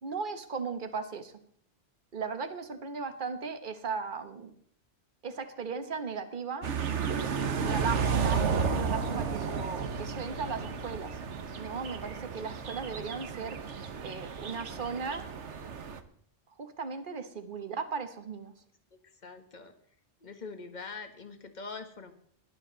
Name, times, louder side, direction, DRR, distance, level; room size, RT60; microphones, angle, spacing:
voice 1, 0.0-1.3 2.1-4.5 5.2-6.7 7.1-11.2 11.6-15.2 16.6-18.5, right 5 dB, 45° right, 9 dB, 1.4 m, -37 dB
car passing woods, 6.6-16.0, right 5 dB, 90° right, 1.4 m, -32 dB
voice 2, 19.2-19.7 20.2-22.1, left 4 dB, 40° left, 7 dB, 1.6 m, -43 dB
18.5 x 11.5 x 4.0 m, 0.62 s
omnidirectional pair, 1.2 m